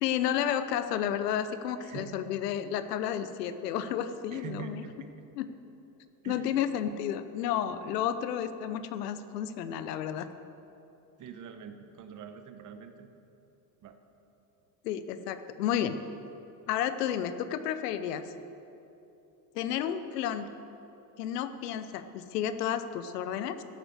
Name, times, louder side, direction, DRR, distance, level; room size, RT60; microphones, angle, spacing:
voice 1, 0.0-4.8 5.4-5.5 6.2-10.3 14.8-16.0 16.7-18.3 19.5-20.5 21.2-23.6, left 10 dB, 90° left, 12 dB, 0.8 m, -31 dB
voice 2, 1.8-2.2 4.3-5.3 6.2-6.6 11.2-13.1 13.8-14.0, right 8 dB, 40° right, 8 dB, 1.1 m, -44 dB
13.0 x 6.4 x 7.9 m, 2.9 s
supercardioid pair, 100°, 46 cm